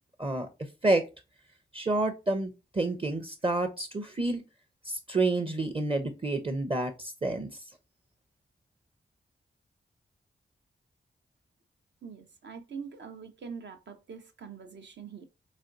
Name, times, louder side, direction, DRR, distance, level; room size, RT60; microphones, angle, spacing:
voice 1, 1.7-4.4 4.8-7.5, right 2 dB, 30° right, 0.6 m, -29 dB
voice 2, 12.0-15.3, right 6 dB, 65° right, 0.7 m, -44 dB
4.1 x 2.3 x 2.5 m
cardioid pair, 45°, 20 cm